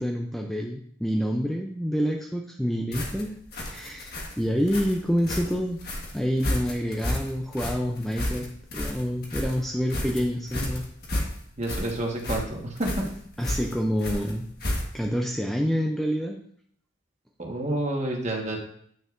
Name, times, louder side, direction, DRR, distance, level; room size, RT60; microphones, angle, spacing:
voice 1, 0.0-4.1 4.4-5.8 6.1-8.5 8.7-10.9 13.4-14.5 14.9-16.4, equal, ahead, 0 dB, 0.4 m, -27 dB
sound 1, 2.9-15.1, left 1 dB, 50° left, 1.4 m, -32 dB
voice 2, 11.6-13.1 17.4-18.6, right 1 dB, 35° right, 0 dB, 1.4 m, -29 dB
9.0 x 6.4 x 2.5 m, 0.64 s
head